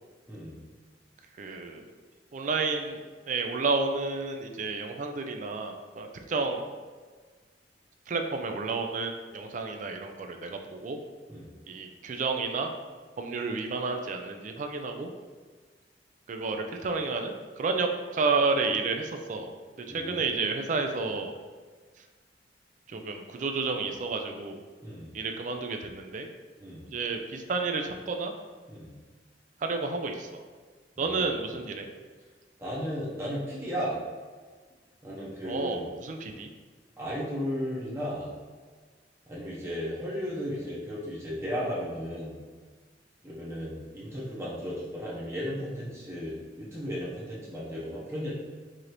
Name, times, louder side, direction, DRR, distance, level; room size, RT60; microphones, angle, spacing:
voice 1, 1.4-1.9 2.3-3.0 3.3-6.6 8.1-11.0 11.7-12.7 13.2-15.1 16.3-19.5 19.9-21.3 22.9-24.6 25.1-26.3 26.9-28.3 29.6-30.4 31.0-31.9 35.4-36.5, right 4 dB, 45° right, 4 dB, 0.4 m, -31 dB
voice 2, 19.9-20.2 24.8-25.1 26.6-26.8 28.7-28.9 31.0-31.2 32.6-34.0 35.0-35.8 37.0-38.3 39.3-42.3 43.2-48.3, equal, 15° right, -7 dB, 0.7 m, -35 dB
4.8 x 2.5 x 2.9 m, 1.5 s
head